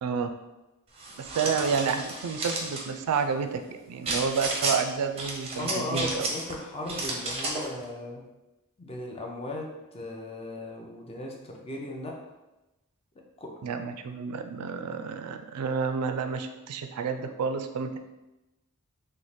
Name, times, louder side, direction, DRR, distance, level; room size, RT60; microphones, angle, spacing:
sound 1, 1.0-2.9 4.0-4.8 5.2-6.5 6.9-7.7, right 2 dB, 25° right, 0.5 m, -32 dB
voice 1, 1.2-6.3 13.6-18.0, right 5 dB, 85° right, 7 dB, 0.3 m, -30 dB
voice 2, 5.6-8.2 8.8-12.3 13.4-13.5 13.8-13.9, left 2 dB, 25° left, 0 dB, 0.5 m, -37 dB
3.1 x 2.1 x 4.1 m, 1.0 s
head